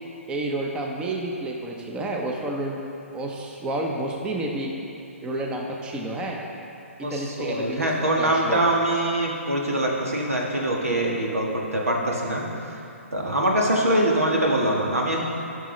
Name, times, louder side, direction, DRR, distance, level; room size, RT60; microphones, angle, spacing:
voice 1, 0.3-2.8 3.1-4.7 5.2-6.4 7.1-7.9 8.2-8.6, right 1 dB, 15° right, 0 dB, 0.8 m, -30 dB
voice 2, 7.0-12.4 13.1-15.2, right 1 dB, 85° right, -1 dB, 1.6 m, -23 dB
13.5 x 6.2 x 3.2 m, 2.7 s
figure-of-eight pair, 135°, 8 cm